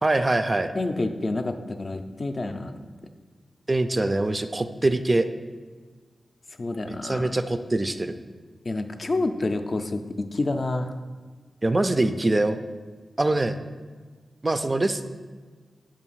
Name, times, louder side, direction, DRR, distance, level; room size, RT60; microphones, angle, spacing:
voice 1, 0.0-0.7 3.7-5.3 6.8-8.1 11.6-12.6 13.2-13.6 14.4-15.0, right 2 dB, 30° right, 9 dB, 0.3 m, -23 dB
voice 2, 0.8-2.7 6.6-7.3 8.7-10.9, left 2 dB, 50° left, 6 dB, 0.4 m, -28 dB
7.0 x 2.5 x 5.5 m, 1.4 s
cardioid pair, 70°, 0 cm